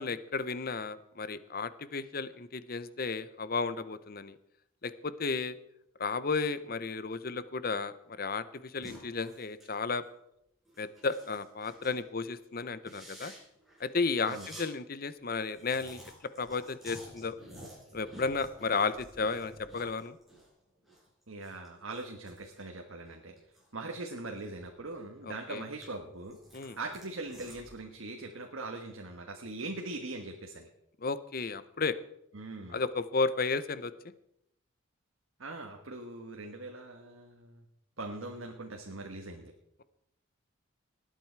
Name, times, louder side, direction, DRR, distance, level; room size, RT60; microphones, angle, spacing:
voice 1, 0.0-4.4 4.8-5.6 6.0-10.0 10.8-13.3 13.8-16.1 16.4-17.4 17.9-20.2 25.5-25.6 26.5-26.8 31.0-32.0 32.7-33.9, left 4 dB, 45° left, 14 dB, 0.7 m, -33 dB
sound 1, 8.8-9.7 10.0-10.2 10.7-12.0 12.3-12.4 12.8-14.7 15.0-15.1 15.3-20.5 20.8-23.7 24.1-25.1 25.5-27.8, equal, ahead, 5.1 m, -52 dB
voice 2, 21.3-23.3 23.7-26.4 26.8-30.7 32.3-32.8 35.4-37.6 38.0-39.5, right 2 dB, 75° right, 2 dB, 1.4 m, -41 dB
19.5 x 9.1 x 4.6 m, 0.80 s
head